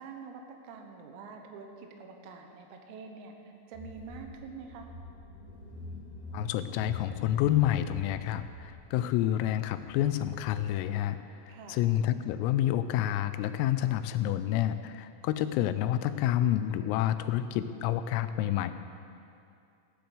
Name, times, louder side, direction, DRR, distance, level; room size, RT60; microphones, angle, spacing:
voice 1, 0.0-4.9 11.5-11.9, right 5 dB, 85° right, 4 dB, 3.9 m, -46 dB
Car / Engine, 3.7-10.8, left 1 dB, 50° left, 2.7 m, -45 dB
voice 2, 6.3-11.2 11.5-18.7, left 12 dB, 90° left, 11 dB, 3.3 m, -29 dB
15.5 x 10.5 x 6.8 m, 2.5 s
omnidirectional pair, 5.9 m